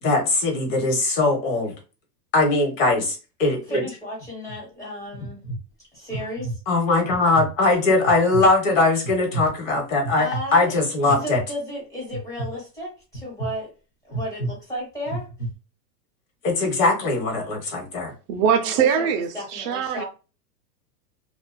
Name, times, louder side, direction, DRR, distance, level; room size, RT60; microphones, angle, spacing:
voice 1, 0.0-1.7 2.3-3.8 6.7-11.4 16.4-18.1, left 2 dB, 50° left, 1.0 m, -21 dB
voice 2, 3.7-5.5 5.9-6.6 10.2-13.7 14.0-15.3 18.6-20.0, equal, 5° left, 1.1 m, -34 dB
sound 1, 4.2-4.6 5.1-5.6 6.1-6.6 7.1-7.5 8.0-8.5 9.0-9.5 10.0-10.4 11.1-11.5 12.1-12.5 13.1-13.5 14.1-14.5 15.1-15.5, right 2 dB, 25° left, 0.7 m, -30 dB
voice 3, 18.3-20.0, right 7 dB, 65° right, 0.6 m, -22 dB
2.5 x 2.2 x 2.2 m
supercardioid pair, 145°, 50 cm